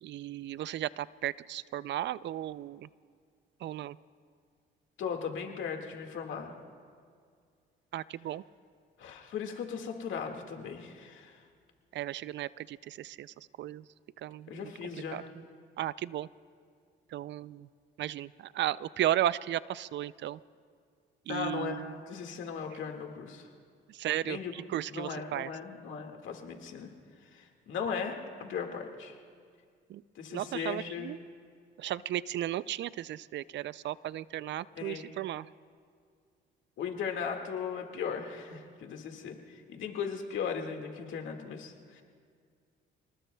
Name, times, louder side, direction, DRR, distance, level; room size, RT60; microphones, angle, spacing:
voice 1, 0.0-2.9 3.6-4.0 7.9-8.4 11.9-13.8 14.2-14.7 15.1-15.2 15.8-16.3 17.1-17.7 18.0-20.4 21.3-22.0 23.9-25.5 29.9-30.0 30.3-31.2 31.8-35.5, right 12 dB, 65° right, 18 dB, 0.4 m, -35 dB
voice 2, 5.0-6.6 9.0-11.4 14.5-15.2 21.3-23.5 24.2-24.5 24.9-26.9 27.2-29.2 30.2-31.1 34.8-35.0 36.8-42.0, left 6 dB, 75° left, 3 dB, 1.9 m, -37 dB
29.0 x 19.5 x 2.3 m, 2.2 s
cardioid pair, 90°, 20 cm